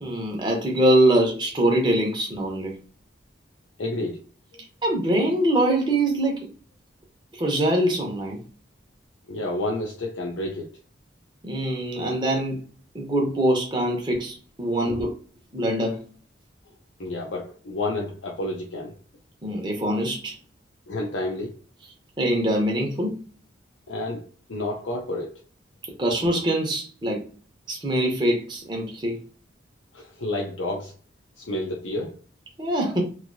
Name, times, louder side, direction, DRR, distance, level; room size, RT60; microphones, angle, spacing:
voice 1, 0.0-2.8 4.8-6.5 7.3-8.4 11.4-12.6 12.9-15.1 15.5-16.0 19.4-20.4 22.2-23.2 26.0-27.2 27.7-29.2 32.6-33.0, right 1 dB, 25° right, 0.7 m, -23 dB
voice 2, 3.8-4.2 9.3-10.7 14.9-15.0 17.0-18.9 20.9-21.5 23.9-24.2 24.5-25.4 29.9-30.9 31.4-32.1, left 2 dB, 75° left, 0.6 m, -30 dB
3.1 x 2.7 x 2.6 m
head